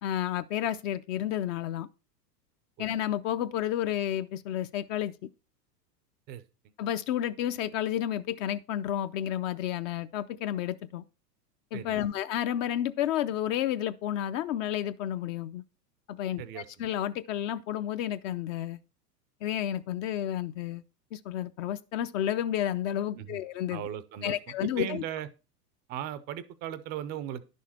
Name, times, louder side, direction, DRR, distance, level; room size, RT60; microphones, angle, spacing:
voice 1, 0.0-1.9 2.8-5.1 6.8-11.0 11.7-15.6 16.1-18.8 19.4-20.8 21.1-23.8 24.2-25.0, left 11 dB, 50° left, 0.6 m, -31 dB
voice 2, 16.4-16.9 23.2-23.4 23.7-25.3 25.9-27.4, right 11 dB, 20° right, 0.4 m, -37 dB
10.5 x 6.4 x 4.2 m
hypercardioid pair, 125°, 49 cm